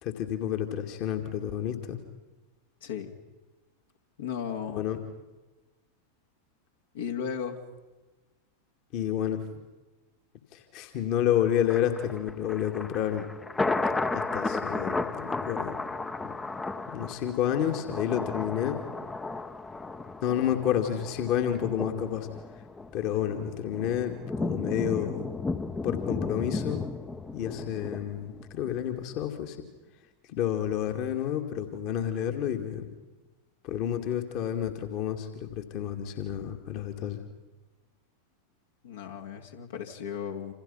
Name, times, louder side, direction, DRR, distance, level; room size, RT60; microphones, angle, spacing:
voice 1, 0.0-2.0 4.7-5.0 8.9-9.4 10.5-13.3 14.1-15.8 16.9-18.8 20.2-22.3 22.9-25.3 25.8-26.8 27.3-29.6 30.3-32.9 33.6-37.2, left 10 dB, 40° left, 4 dB, 2.5 m, -30 dB
voice 2, 2.8-3.1 4.2-4.8 6.9-7.6 38.8-40.5, left 7 dB, 60° left, 3 dB, 2.7 m, -35 dB
Thunder, 11.7-28.8 29.1-29.2, left 3 dB, 10° left, 1.1 m, -34 dB
28.5 x 28.0 x 5.7 m, 1.2 s
figure-of-eight pair, 90°, 0 cm